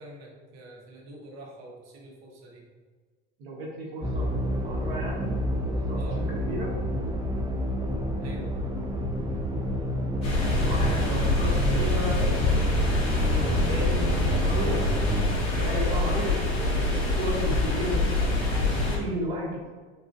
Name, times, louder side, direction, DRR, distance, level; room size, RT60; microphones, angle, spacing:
voice 1, 0.0-2.7 5.9-6.3 8.2-8.6, right 1 dB, 55° right, -1 dB, 1.1 m, -45 dB
voice 2, 3.4-5.4 5.7-6.7 8.3-8.5 10.3-12.6 13.4-18.1 18.7-19.7, equal, 80° right, -3 dB, 1.3 m, -34 dB
sound 1, 4.0-15.2, equal, 15° right, 0.6 m, -29 dB
sound 2, 10.2-19.0, left 2 dB, 45° left, 1.4 m, -25 dB
5.8 x 2.7 x 2.2 m, 1.5 s
hypercardioid pair, 85°, 32 cm